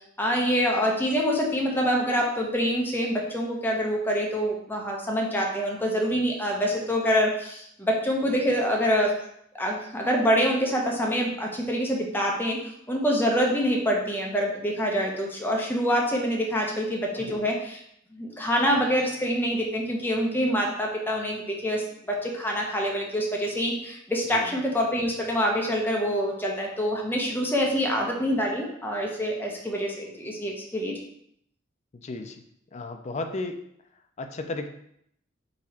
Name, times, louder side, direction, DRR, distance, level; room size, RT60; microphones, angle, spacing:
voice 1, 0.2-9.1 9.5-12.6 12.9-17.8 18.1-31.0, equal, 10° left, -1 dB, 0.7 m, -26 dB
voice 2, 17.2-17.5 24.3-24.6 32.0-32.4 32.7-33.6 34.2-34.7, left 2 dB, 35° left, 6 dB, 0.4 m, -34 dB
4.0 x 2.9 x 4.2 m, 0.72 s
head